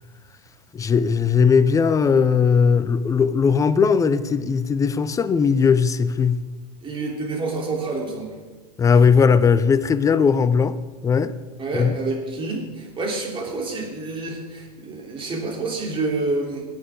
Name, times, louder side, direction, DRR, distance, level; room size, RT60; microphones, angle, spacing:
voice 1, 0.7-6.4 8.8-10.8 11.0-11.3 11.7-11.9, left 6 dB, 15° left, 0.5 m, -18 dB
voice 2, 6.8-8.3 11.6-16.6, right 3 dB, 25° right, 3.3 m, -28 dB
20.5 x 8.8 x 3.7 m
hypercardioid pair, 115°, 21 cm